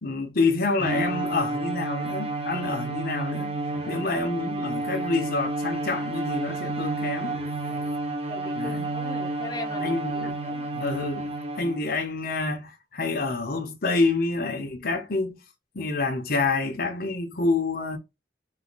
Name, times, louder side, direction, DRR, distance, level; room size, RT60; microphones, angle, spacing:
voice 1, 0.0-3.5 3.9-7.4 8.6-8.9 9.8-10.3 10.7-15.4 15.7-18.0, left 3 dB, 55° left, 0.9 m, -27 dB
Bowed string instrument, 0.8-12.0, right 2 dB, 35° right, 1.0 m, -30 dB
voice 2, 3.7-4.1 7.7-10.7, left 2 dB, 20° left, 0.8 m, -41 dB
4.1 x 2.7 x 3.9 m
head